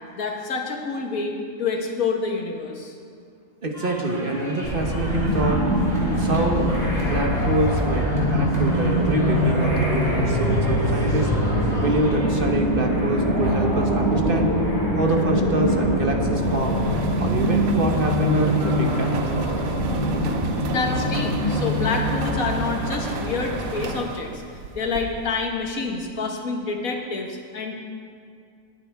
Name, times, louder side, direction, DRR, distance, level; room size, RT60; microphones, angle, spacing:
voice 1, 0.2-2.9 20.7-24.4 24.8-27.8, left 4 dB, 85° left, 1 dB, 1.7 m, -27 dB
voice 2, 3.6-5.6 6.2-11.3 11.8-14.5 15.0-16.8 17.2-19.2, right 2 dB, 45° right, 2 dB, 1.1 m, -25 dB
sound 1, 3.7-12.4, equal, 30° right, 2.5 m, -38 dB
sound 2, 4.6-23.8, equal, 20° left, 3.3 m, -23 dB
sound 3, 16.2-25.5, right 5 dB, 85° right, 1.2 m, -35 dB
19.5 x 8.8 x 3.5 m, 2.3 s
omnidirectional pair, 1.4 m